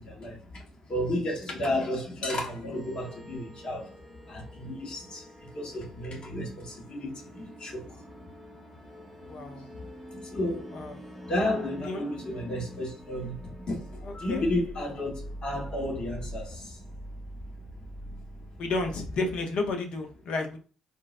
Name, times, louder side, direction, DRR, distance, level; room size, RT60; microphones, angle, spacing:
voice 1, 0.0-8.3 8.6-8.8 9.3-16.9 17.3-17.4 18.1-18.2 18.6-18.7, left 1 dB, 50° left, 1.1 m, -33 dB
sound 1, 2.7-19.2, right 1 dB, 5° left, 0.9 m, -45 dB
voice 2, 9.3-9.7 10.7-11.0 11.8-12.0 14.0-14.5 18.6-20.6, left 3 dB, 65° left, 0.6 m, -31 dB
3.7 x 2.0 x 2.4 m
hypercardioid pair, 50°, 2 cm